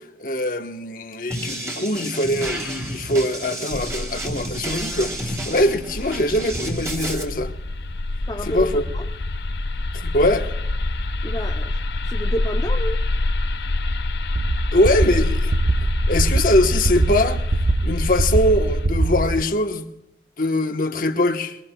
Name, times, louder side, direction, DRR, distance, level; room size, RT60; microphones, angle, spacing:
voice 1, 0.2-7.5 8.4-8.8 10.0-10.5 14.7-15.5 16.1-17.4 17.8-19.9 20.4-21.6, left 1 dB, 50° left, 1.1 m, -22 dB
sound 1, 1.3-7.2, right 1 dB, 15° right, 3.2 m, -31 dB
sound 2, 3.7-18.9, left 2 dB, 75° left, 0.7 m, -27 dB
voice 2, 8.3-9.1 11.2-11.8 12.1-13.1, equal, 20° left, 0.6 m, -30 dB
sound 3, 14.3-19.4, right 2 dB, 55° right, 0.6 m, -22 dB
23.0 x 22.0 x 2.3 m
head